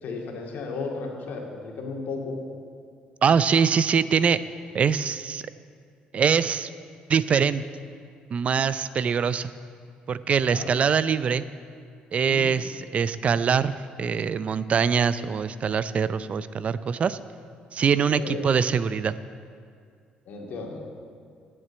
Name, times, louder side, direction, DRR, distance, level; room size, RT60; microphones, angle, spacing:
voice 1, 0.0-2.4 10.4-10.7 12.2-12.6 18.1-18.4 20.3-20.8, left 4 dB, 70° left, 0 dB, 2.1 m, -34 dB
voice 2, 3.2-4.4 4.7-5.4 6.1-6.7 7.1-7.6 8.3-9.5 10.1-11.4 12.1-17.2 17.7-19.2, right 6 dB, 45° right, 15 dB, 0.4 m, -23 dB
9.7 x 7.6 x 8.8 m, 2.2 s
cardioid pair, 100°, 3 cm